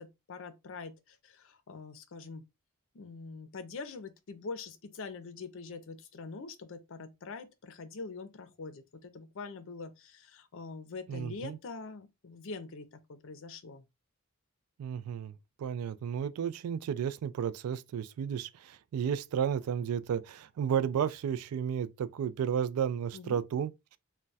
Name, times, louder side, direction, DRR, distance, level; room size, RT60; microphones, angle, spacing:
voice 1, 0.0-2.4 2.9-13.9 23.1-23.4, left 4 dB, 60° left, 0.5 m, -44 dB
voice 2, 11.1-11.6 14.8-23.7, right 8 dB, 80° right, 0.3 m, -33 dB
2.2 x 2.2 x 3.8 m
head